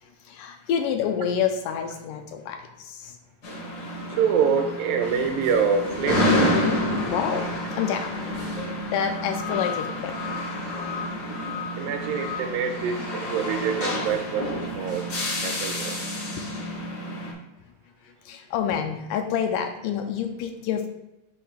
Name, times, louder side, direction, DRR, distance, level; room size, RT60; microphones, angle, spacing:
voice 1, 0.0-3.2 7.1-8.1 8.9-10.4 16.5-16.6 16.9-17.0 18.0-20.9, left 8 dB, 80° left, 5 dB, 2.0 m, -28 dB
sound 1, 3.4-17.3, left 1 dB, 60° left, 1.0 m, -29 dB
voice 2, 4.1-6.6 11.8-15.1 15.4-16.0, right 6 dB, 85° right, 6 dB, 2.3 m, -26 dB
6.5 x 3.1 x 5.7 m, 0.93 s
omnidirectional pair, 4.0 m